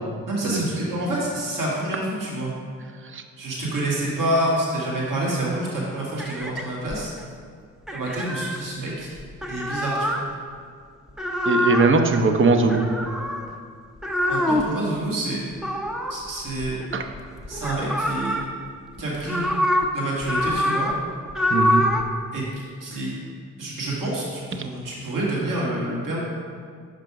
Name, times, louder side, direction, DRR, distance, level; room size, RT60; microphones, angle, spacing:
voice 1, 0.3-2.5 3.4-7.1 7.9-9.1 9.5-10.2 14.3-15.4 16.1-16.8 17.5-18.4 19.0-19.5 19.9-20.9 22.3-23.2 23.6-26.2, right 1 dB, 65° right, -5 dB, 1.7 m, -27 dB
sound 1, 6.2-7.2 7.9-8.6 9.2-10.2 11.1-11.9 12.7-13.5 14.0-14.8 15.6-17.2 17.4-18.5 19.0-19.9 20.2-21.0 21.3-22.1, left 1 dB, ahead, 0.6 m, -25 dB
voice 2, 11.5-12.8 16.9-17.0 21.5-21.8, right 3 dB, 35° right, 6 dB, 0.7 m, -19 dB
5.7 x 5.1 x 4.7 m, 2.1 s
supercardioid pair, 55°, 34 cm